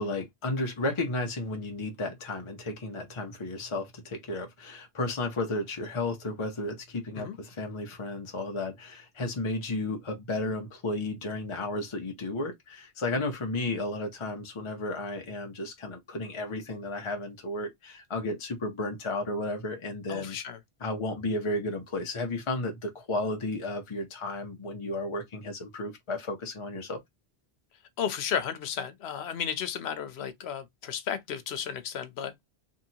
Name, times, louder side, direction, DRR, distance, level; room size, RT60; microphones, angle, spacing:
voice 1, 0.0-20.4 20.8-27.0, left 2 dB, 35° left, 0.5 m, -33 dB
voice 2, 20.1-20.6 28.0-32.3, left 8 dB, 85° left, 0.9 m, -33 dB
2.9 x 2.7 x 2.7 m
omnidirectional pair, 1.1 m